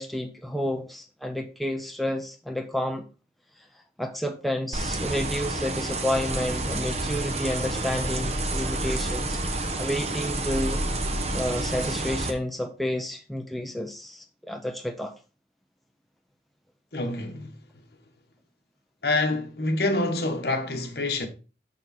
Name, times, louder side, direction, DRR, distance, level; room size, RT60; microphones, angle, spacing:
voice 1, 0.0-3.0 4.0-9.4 9.8-10.8 11.3-15.2, left 1 dB, ahead, 0.5 m, -30 dB
sound 1, 4.7-12.3, right 2 dB, 35° right, 0.9 m, -29 dB
voice 2, 16.9-17.5 19.0-21.3, left 2 dB, 65° left, 1.3 m, -26 dB
6.7 x 5.9 x 4.1 m
head